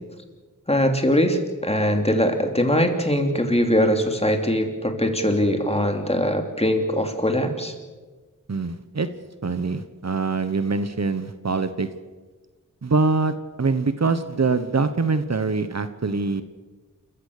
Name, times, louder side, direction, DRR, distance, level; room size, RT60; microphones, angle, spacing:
voice 1, 0.7-7.7, equal, 20° left, 4 dB, 3.0 m, -21 dB
voice 2, 8.5-9.1 9.4-11.9 12.8-13.3 13.6-16.4, right 4 dB, 55° right, 11 dB, 1.1 m, -24 dB
28.5 x 15.0 x 6.7 m, 1.3 s
wide cardioid pair, 45°, 32 cm